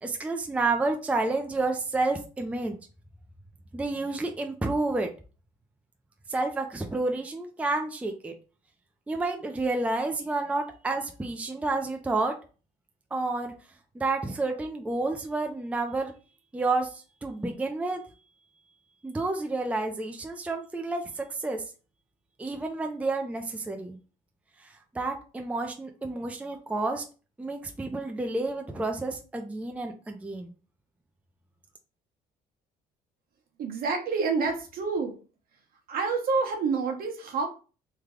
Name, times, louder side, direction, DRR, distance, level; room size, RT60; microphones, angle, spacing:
voice 1, 0.0-2.8 3.7-5.1 6.3-8.3 9.1-12.4 13.1-13.5 13.9-16.1 16.5-18.0 19.0-21.6 22.4-24.0 24.6-27.0 27.4-30.5, right 2 dB, 10° right, 3 dB, 0.5 m, -30 dB
voice 2, 33.6-35.2 35.9-37.5, right 4 dB, 60° right, 3 dB, 1.0 m, -28 dB
3.3 x 2.2 x 3.6 m, 0.36 s
cardioid pair, 110°, 17 cm